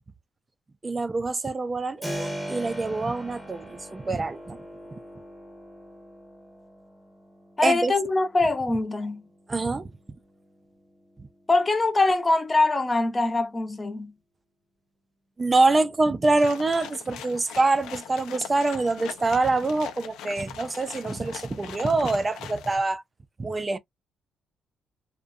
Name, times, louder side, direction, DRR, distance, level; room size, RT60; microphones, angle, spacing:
voice 1, 0.8-4.6 7.6-7.9 9.5-9.9 11.2-11.3 15.4-23.0 23.4-23.8, right 3 dB, 25° right, 0.4 m, -25 dB
Keyboard (musical), 2.0-12.7, equal, 10° right, 0.9 m, -41 dB
voice 2, 7.6-9.2 11.5-14.1, left 2 dB, 20° left, 0.6 m, -23 dB
sound 1, 16.3-22.8, left 9 dB, 90° left, 0.5 m, -41 dB
2.5 x 2.1 x 2.4 m
cardioid pair, 90°, 0 cm